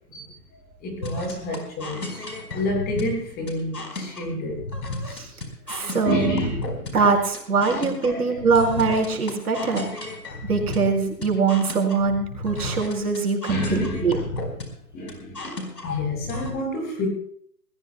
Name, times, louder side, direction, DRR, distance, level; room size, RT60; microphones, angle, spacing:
voice 1, 0.1-2.2 2.5-4.7 6.1-7.1 7.7-8.4 13.5-14.1 14.9-15.6 15.8-17.1, left 1 dB, 20° left, 0 dB, 8.0 m, -29 dB
sound 1, 1.0-16.5, left 2 dB, 85° left, 4.6 m, -34 dB
voice 2, 5.7-6.4 6.9-9.9 10.4-14.2, right 4 dB, 70° right, 2 dB, 4.8 m, -22 dB
22.0 x 20.0 x 2.2 m, 0.63 s
figure-of-eight pair, 135°, 47 cm